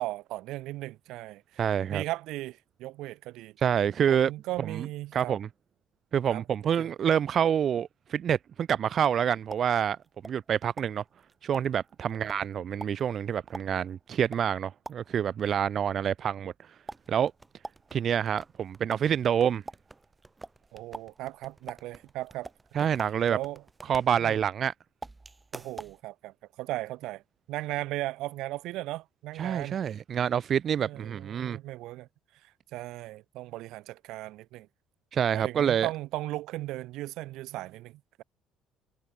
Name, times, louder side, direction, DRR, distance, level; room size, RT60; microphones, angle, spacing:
voice 1, 0.0-1.4 1.9-3.6 4.1-5.3 6.3-6.4 6.8-6.9 12.1-12.5 20.7-22.5 22.8-22.9 23.3-24.4 25.5-27.2 27.5-29.8 30.8-32.1 32.7-34.7 35.3-38.2, right 17 dB, 65° right, 0.7 m, -37 dB
voice 2, 1.6-2.0 3.6-4.3 4.7-4.9 5.1-5.5 6.1-10.0 10.2-11.0 11.4-16.5 17.1-17.3 17.9-19.6 22.7-23.4 23.9-24.7 29.4-31.6 35.1-35.9, right 8 dB, 35° right, 0.4 m, -27 dB
sound 1, 9.0-10.5 10.8-15.3 16.9-24.7 25.0-26.0, right 2 dB, 10° right, 1.1 m, -46 dB
cardioid pair, 175°, 0 cm